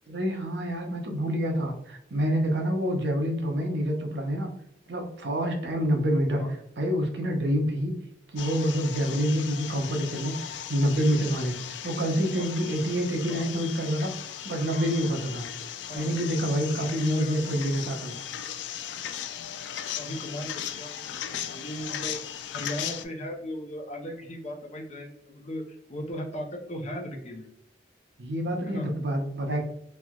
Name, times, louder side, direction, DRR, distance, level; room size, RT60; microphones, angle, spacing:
voice 1, 0.1-4.5 4.9-6.4 6.8-7.9 8.3-14.1 14.4-15.5 15.9-18.2 28.2-29.6, equal, 70° right, 3 dB, 0.7 m, -27 dB
sound 1, 8.4-23.0, left 9 dB, 85° left, 0.3 m, -37 dB
voice 2, 17.1-17.8 19.9-22.2 22.5-27.5 28.7-28.9, equal, 40° left, 2 dB, 0.6 m, -37 dB
3.2 x 2.9 x 2.3 m, 0.77 s
head